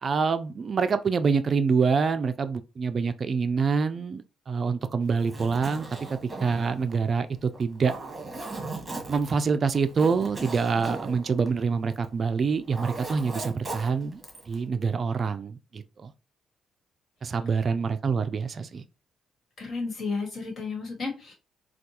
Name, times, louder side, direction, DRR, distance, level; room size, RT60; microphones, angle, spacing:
voice 1, 0.0-7.9 9.1-16.1 17.2-18.8, right 5 dB, 45° right, 0.3 m, -26 dB
Zipper (clothing), 5.1-12.2 12.5-14.6, right 3 dB, 15° right, 1.4 m, -38 dB
voice 2, 19.6-21.3, left 4 dB, 50° left, 1.6 m, -32 dB
4.4 x 2.3 x 2.8 m
cardioid pair, 90°, 0 cm